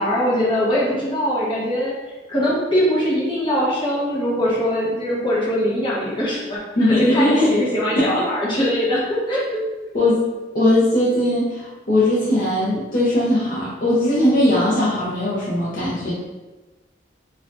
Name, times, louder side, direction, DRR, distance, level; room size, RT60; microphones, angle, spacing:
voice 1, 0.0-1.9 2.3-6.6 7.1-9.0 9.3-9.6, equal, 30° left, -7 dB, 1.0 m, -21 dB
voice 2, 6.8-7.6 8.0-8.2 9.9-10.2 10.5-16.1, left 1 dB, 50° left, -9 dB, 0.7 m, -19 dB
4.3 x 2.5 x 2.5 m, 1.1 s
head